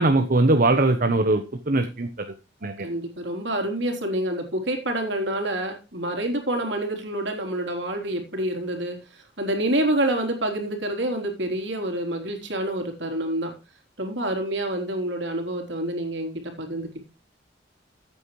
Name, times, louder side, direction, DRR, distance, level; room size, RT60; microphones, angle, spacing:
voice 1, 0.0-2.1 2.6-2.9, right 2 dB, 45° right, 7 dB, 1.0 m, -21 dB
voice 2, 2.8-13.5 14.0-17.0, right 1 dB, 65° right, 3 dB, 3.6 m, -27 dB
14.5 x 9.0 x 3.2 m, 0.32 s
head